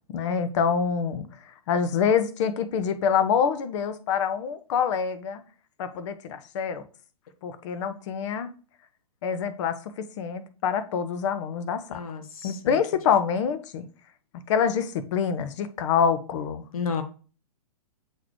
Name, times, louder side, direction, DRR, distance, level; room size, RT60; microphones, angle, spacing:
voice 1, 0.1-1.3 1.7-5.4 5.8-6.8 7.4-8.5 9.2-12.0 12.4-13.8 14.5-16.6, left 7 dB, 50° left, 1.0 m, -26 dB
voice 2, 11.9-12.8 16.7-17.0, left 5 dB, 65° left, 1.4 m, -32 dB
8.2 x 3.9 x 3.1 m
hypercardioid pair, 120°, 19 cm